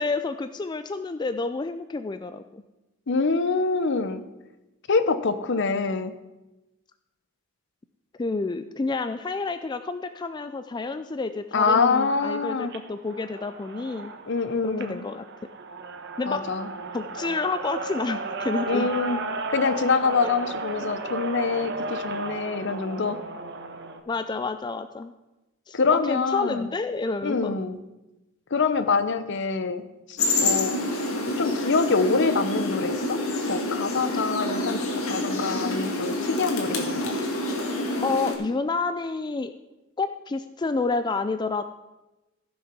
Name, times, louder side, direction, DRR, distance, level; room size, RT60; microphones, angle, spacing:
voice 1, 0.0-2.6 8.2-14.1 14.6-15.3 16.2-16.4 16.9-18.9 20.2-20.3 24.1-25.1 25.7-27.6 34.1-34.2 38.0-39.5 40.0-41.6, left 3 dB, 20° left, 10 dB, 0.3 m, -29 dB
voice 2, 3.1-4.2 4.9-6.1 11.5-12.7 14.3-15.0 16.3-16.7 18.7-19.2 19.5-23.2 25.7-26.6 27.2-27.8 28.5-29.8 30.1-30.8 31.4-33.2 33.5-37.2, left 4 dB, 60° left, 12 dB, 0.8 m, -25 dB
sound 1, 12.6-24.0, right 3 dB, 55° right, 1.0 m, -34 dB
sound 2, 30.2-38.3, left 2 dB, 85° left, 2.2 m, -27 dB
14.5 x 6.4 x 6.0 m, 1.0 s
head